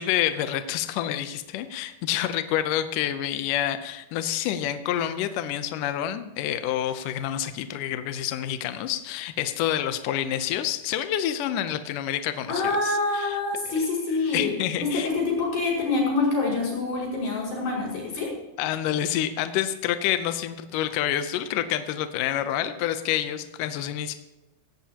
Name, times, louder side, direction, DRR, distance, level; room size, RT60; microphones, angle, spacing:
voice 1, 0.0-13.4 14.3-15.1 18.6-24.1, left 11 dB, 80° left, 10 dB, 1.9 m, -28 dB
voice 2, 12.5-14.5 14.8-18.3, left 3 dB, 60° left, -4 dB, 7.2 m, -26 dB
17.0 x 16.5 x 2.9 m, 1.1 s
omnidirectional pair, 4.5 m